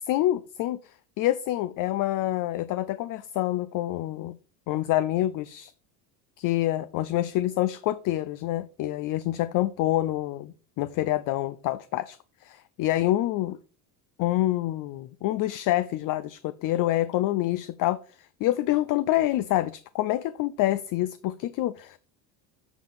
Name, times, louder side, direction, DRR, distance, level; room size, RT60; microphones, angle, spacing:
voice 1, 0.1-4.4 4.7-5.7 6.4-13.6 14.2-22.0, left 15 dB, 45° left, 15 dB, 0.5 m, -27 dB
8.2 x 5.0 x 3.6 m, 0.38 s
supercardioid pair, 90°, 50 cm